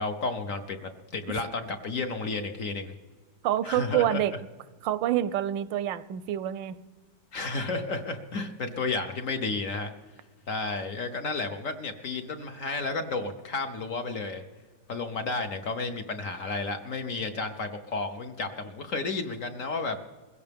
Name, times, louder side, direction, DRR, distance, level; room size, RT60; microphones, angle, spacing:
voice 1, 0.0-2.9 3.6-4.2 7.3-9.9 10.5-14.4 14.9-20.0, left 3 dB, 55° left, 6 dB, 1.1 m, -32 dB
voice 2, 3.4-4.3 4.8-6.8, right 12 dB, 80° right, 16 dB, 1.3 m, -27 dB
21.5 x 16.5 x 3.5 m, 1.3 s
omnidirectional pair, 2.0 m